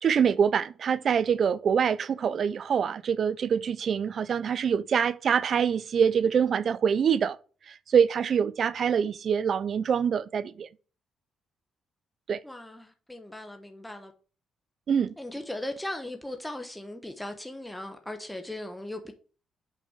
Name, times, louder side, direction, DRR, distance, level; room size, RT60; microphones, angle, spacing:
voice 1, 0.0-7.4 7.7-10.7 12.3-12.4 14.9-15.1, right 7 dB, 55° right, 0.5 m, -25 dB
voice 2, 12.4-14.1 15.2-19.1, left 1 dB, 5° left, 1.0 m, -38 dB
5.6 x 5.1 x 5.0 m
cardioid pair, 90°, 0 cm